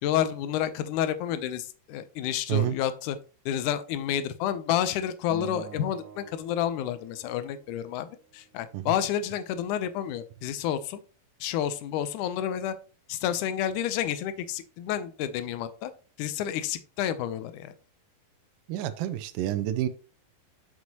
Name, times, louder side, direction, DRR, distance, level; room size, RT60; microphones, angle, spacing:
voice 1, 0.0-3.2 3.5-11.0 11.4-12.8 13.1-15.9 16.2-17.7, left 10 dB, 80° left, 12 dB, 1.9 m, -30 dB
Acoustic guitar, 5.3-7.7, right 8 dB, 60° right, 2.1 m, -45 dB
voice 2, 18.7-19.9, right 12 dB, 85° right, 10 dB, 2.2 m, -28 dB
8.1 x 6.4 x 2.9 m, 0.36 s
omnidirectional pair, 4.0 m